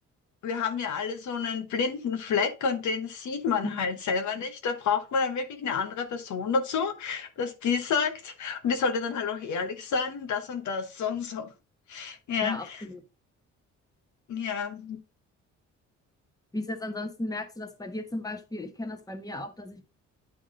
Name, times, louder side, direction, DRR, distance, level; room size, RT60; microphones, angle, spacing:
voice 1, 0.4-11.5 11.9-12.8 14.3-15.0, left 5 dB, 70° left, 1.2 m, -29 dB
voice 2, 12.4-13.0 16.5-19.8, left 1 dB, 10° left, 1.2 m, -35 dB
10.0 x 3.6 x 3.7 m
cardioid pair, 90°, 30 cm